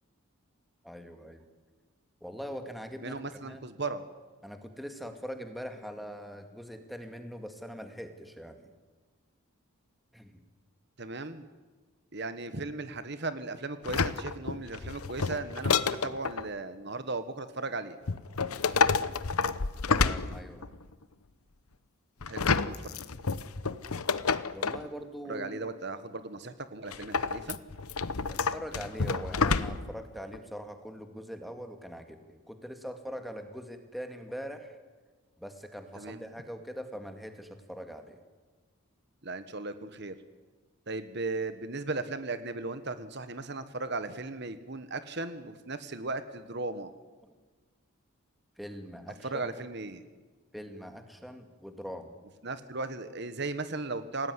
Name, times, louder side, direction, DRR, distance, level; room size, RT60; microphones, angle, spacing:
voice 1, 0.8-1.4 2.2-3.6 4.4-8.7 10.1-10.4 19.9-20.6 24.5-25.6 28.3-34.8 35.4-38.2 48.6-49.6 50.5-52.2, equal, ahead, 6 dB, 2.1 m, -42 dB
voice 2, 3.0-4.0 11.0-11.5 12.1-18.0 22.3-22.8 25.3-27.6 35.9-36.2 39.2-40.1 40.9-46.9 49.2-50.0 52.4-54.3, right 3 dB, 50° right, 11 dB, 1.4 m, -36 dB
sound 1, 13.8-16.5 18.1-20.8 22.2-24.9 26.9-30.0 30.3-30.4, left 4 dB, 85° left, 1.0 m, -29 dB
27.5 x 18.5 x 9.8 m, 1.3 s
head